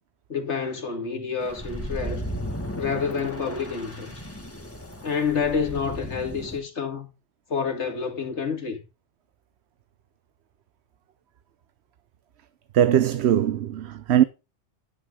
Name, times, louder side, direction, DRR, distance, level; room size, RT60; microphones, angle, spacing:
voice 1, 0.3-2.2 2.8-4.1 5.0-7.1 7.5-8.8, left 6 dB, 75° left, 2.2 m, -28 dB
sound 1, 1.4-6.6, equal, 10° left, 1.8 m, -35 dB
voice 2, 12.7-14.2, right 10 dB, 70° right, 0.9 m, -20 dB
11.0 x 9.4 x 3.7 m
omnidirectional pair, 1.2 m